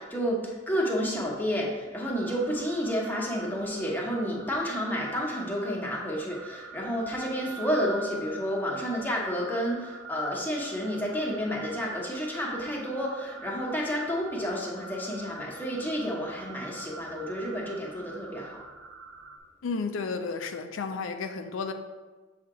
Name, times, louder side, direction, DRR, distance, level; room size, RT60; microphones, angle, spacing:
voice 1, 0.0-18.6, equal, 10° left, -3 dB, 1.0 m, -30 dB
sound 1, 2.1-19.4, right 3 dB, 70° right, 0.6 m, -45 dB
voice 2, 19.6-21.7, left 4 dB, 90° left, 6 dB, 0.5 m, -32 dB
7.1 x 2.9 x 4.8 m, 1.3 s
head